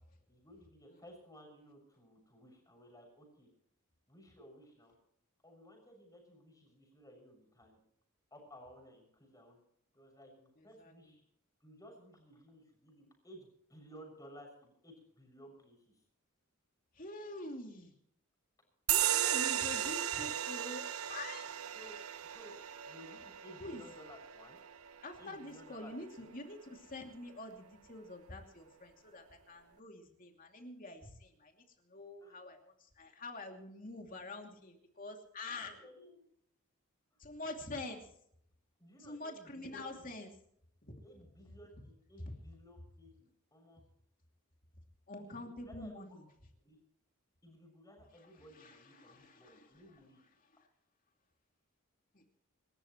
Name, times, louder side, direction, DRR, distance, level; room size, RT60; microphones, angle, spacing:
voice 1, 0.3-3.5 4.1-4.9 5.4-7.8 8.3-9.6 9.9-11.2 11.6-16.0 21.7-22.0 22.3-22.5 22.9-24.6 25.2-25.9 26.2-26.3 32.2-32.4 35.6-36.2 38.8-40.0 41.0-43.8 45.1-46.1 46.6-46.8 47.4-50.2, equal, 15° left, 2 dB, 6.7 m, -57 dB
voice 2, 10.6-11.2 16.9-17.9 18.9-21.5 23.6-23.8 25.0-31.6 31.8-35.7 37.2-38.1 39.0-40.3 40.8-41.0 42.2-42.3 45.1-46.3 48.1-50.7 52.1-52.2, left 2 dB, 40° left, 3 dB, 2.7 m, -47 dB
sound 1, 18.9-25.9, right 11 dB, 80° right, 0.7 m, -36 dB
27.5 x 13.5 x 3.1 m, 0.68 s
head